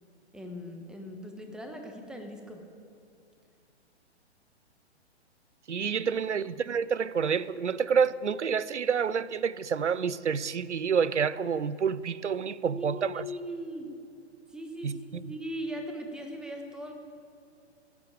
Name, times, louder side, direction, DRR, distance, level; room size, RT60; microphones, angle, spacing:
voice 1, 0.3-2.6 6.4-6.5 12.7-13.9 14.5-16.9, equal, ahead, 1.2 m, -39 dB
voice 2, 5.7-13.2 14.8-15.2, right 6 dB, 85° right, 0.6 m, -28 dB
15.5 x 9.6 x 8.6 m
figure-of-eight pair, 120°, 34 cm